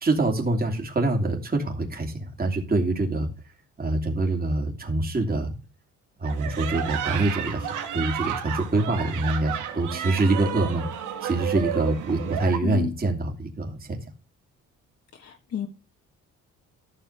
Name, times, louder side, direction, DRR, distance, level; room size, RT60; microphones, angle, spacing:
voice 1, 0.0-3.3 3.8-5.5 6.2-10.9 11.2-14.0, right 2 dB, 30° right, 2 dB, 2.9 m, -25 dB
sound 1, 6.2-12.6, right 9 dB, 90° right, 1.8 m, -32 dB
voice 2, 15.2-15.7, left 7 dB, 55° left, 3 dB, 1.6 m, -30 dB
13.5 x 6.9 x 3.3 m, 0.33 s
cardioid pair, 90°, 30 cm